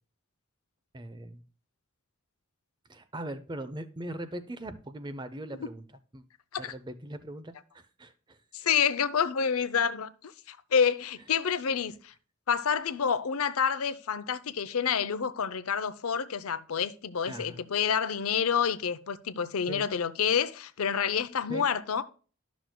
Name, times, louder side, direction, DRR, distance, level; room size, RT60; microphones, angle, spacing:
voice 1, 0.9-1.4 2.9-5.9 6.1-6.2 6.6-8.4 17.3-17.6 19.7-19.9 21.5-21.7, right 1 dB, 20° right, 0.6 m, -40 dB
voice 2, 8.5-12.1 12.5-22.0, left 7 dB, 85° left, 0.6 m, -28 dB
11.5 x 6.2 x 2.2 m
head